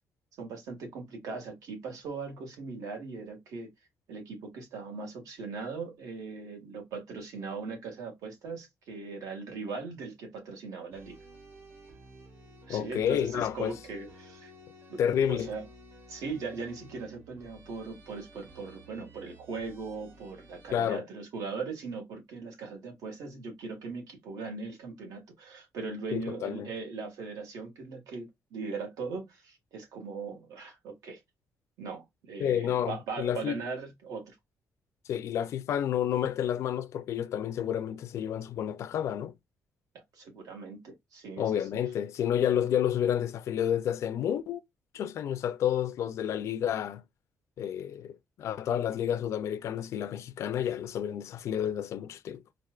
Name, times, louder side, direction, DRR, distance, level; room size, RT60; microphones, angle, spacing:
voice 1, 0.4-3.7 4.1-11.2 12.7-14.5 14.9-15.0 15.3-15.6 16.1-31.2 31.8-34.3 39.9-41.7, right 4 dB, 80° right, 1.7 m, -39 dB
sound 1, 10.9-20.7, right 1 dB, 40° right, 1.0 m, -53 dB
voice 2, 12.7-13.7 15.0-15.5 20.7-21.0 26.1-26.7 32.4-33.6 35.1-39.3 41.4-44.6 44.9-47.0 47.6-48.1 48.4-52.4, left 9 dB, 55° left, 0.4 m, -30 dB
4.2 x 2.5 x 2.3 m
cardioid pair, 175°, 6 cm